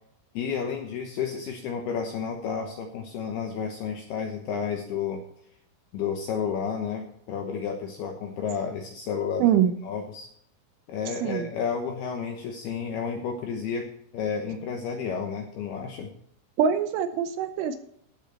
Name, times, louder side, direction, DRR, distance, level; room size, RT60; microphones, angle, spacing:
voice 1, 0.3-5.2 5.9-9.5 9.8-10.3 10.9-13.9 14.1-16.1, left 6 dB, 75° left, 3 dB, 2.4 m, -31 dB
voice 2, 9.4-9.7 11.2-11.5 16.6-17.8, right 9 dB, 80° right, 9 dB, 3.1 m, -23 dB
15.5 x 7.1 x 4.3 m, 0.71 s
omnidirectional pair, 5.9 m